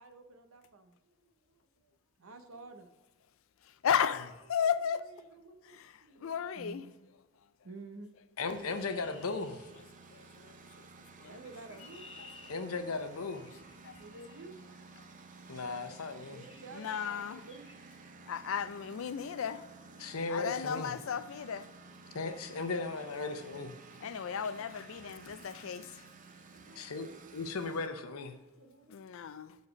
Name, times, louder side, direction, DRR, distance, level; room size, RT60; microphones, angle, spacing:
voice 1, 0.0-1.9 2.2-2.9 4.9-6.9 7.6-8.1 11.3-12.1 14.0-14.6 16.1-17.7 24.0-24.1 26.5-27.1 28.3-28.9, right 3 dB, 65° right, 0.8 m, -52 dB
voice 2, 3.8-5.1 5.7-5.9 6.2-6.8 10.1-10.9 11.2-11.3 13.8-14.0 16.7-17.4 18.3-19.6 20.3-21.7 24.0-26.0 28.9-29.5, left 7 dB, 65° left, 0.4 m, -34 dB
voice 3, 8.4-9.7 12.5-13.5 15.5-16.4 20.0-20.9 22.1-23.7 26.8-28.4, left 3 dB, 85° left, 0.7 m, -36 dB
Engine, 8.5-27.9, right 4 dB, 35° right, 0.5 m, -54 dB
Chirp tweet, 8.6-10.3 11.3-14.4 15.5-15.8 16.4-16.7 16.9-17.2 17.5-17.8, left 5 dB, 25° left, 0.8 m, -57 dB
6.8 x 4.1 x 4.8 m
head